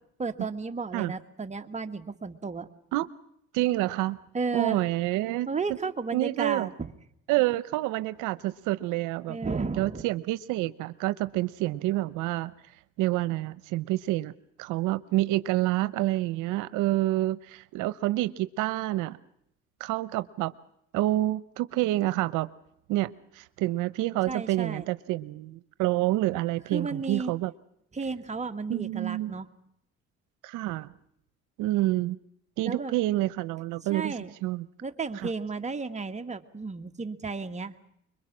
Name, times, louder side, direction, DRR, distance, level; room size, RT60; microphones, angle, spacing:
voice 1, 0.2-2.7 4.3-4.8 5.5-6.9 9.3-10.0 24.3-24.9 26.7-27.3 27.9-29.5 32.6-33.0 33.9-34.3 34.8-37.7, right 4 dB, 25° right, 7 dB, 1.7 m, -33 dB
voice 2, 3.5-4.2 4.5-5.5 6.1-6.7 7.3-9.4 9.8-12.5 13.0-14.3 14.6-19.2 19.8-20.5 20.9-22.5 22.9-27.5 28.7-29.3 30.4-30.9 31.6-32.2 32.6-34.1 34.4-34.6, right 17 dB, 90° right, 15 dB, 0.8 m, -28 dB
25.0 x 22.5 x 6.1 m, 0.75 s
cardioid pair, 100°, 30 cm